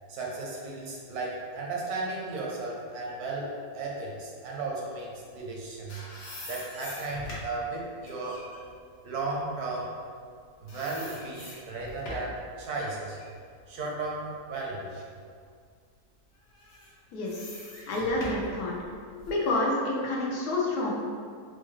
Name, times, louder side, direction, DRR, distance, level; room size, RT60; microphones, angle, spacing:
voice 1, 0.1-6.0 6.5-8.4 9.0-9.9 10.6-13.2 13.7-15.0, right 3 dB, 85° right, -2 dB, 1.3 m, -35 dB
sound 1, 5.5-10.4 10.7-12.4 12.9-14.8 15.3-15.4 16.5-19.5, left 1 dB, 70° left, 1.3 m, -44 dB
voice 2, 17.1-17.5 17.9-18.8 19.3-20.9, left 2 dB, 85° left, -3 dB, 1.3 m, -28 dB
4.5 x 2.3 x 3.0 m, 2.1 s
omnidirectional pair, 1.6 m